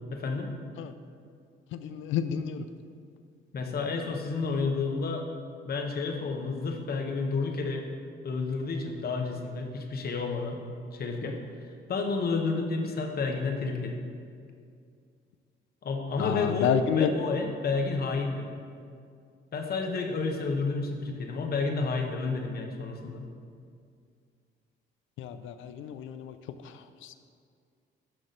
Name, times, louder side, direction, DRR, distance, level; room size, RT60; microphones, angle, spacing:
voice 1, 0.1-0.5 3.5-5.3 5.6-7.9 8.2-10.6 10.9-11.4 11.9-14.0 15.8-18.5 19.5-23.3, left 4 dB, 50° left, 3 dB, 1.0 m, -30 dB
voice 2, 1.7-2.7 16.2-17.1 25.2-26.4 26.6-27.1, left 8 dB, 85° left, 11 dB, 0.5 m, -30 dB
6.2 x 6.0 x 5.1 m, 2.3 s
cardioid pair, 90°, 20 cm